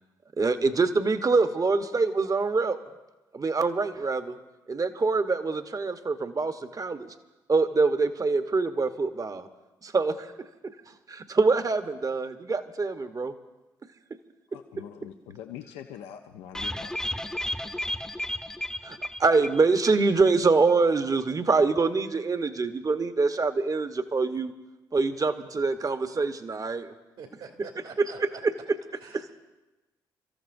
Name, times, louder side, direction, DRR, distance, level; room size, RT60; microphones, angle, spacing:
voice 1, 0.4-2.8 3.3-4.4 4.7-7.1 7.5-9.5 9.8-10.7 11.1-13.3 18.8-24.5 24.9-26.9 28.2-28.3 29.1-29.2, right 4 dB, 35° right, 9 dB, 1.1 m, -25 dB
voice 2, 14.5-17.1, left 10 dB, 80° left, 5 dB, 0.6 m, -43 dB
sound 1, 16.5-20.0 20.3-20.4 20.7-20.8, left 1 dB, 5° left, 0.8 m, -33 dB
voice 3, 27.2-28.4 28.9-29.3, right 5 dB, 75° right, 1 dB, 2.3 m, -45 dB
29.5 x 14.0 x 2.6 m, 1.1 s
hypercardioid pair, 45°, 10 cm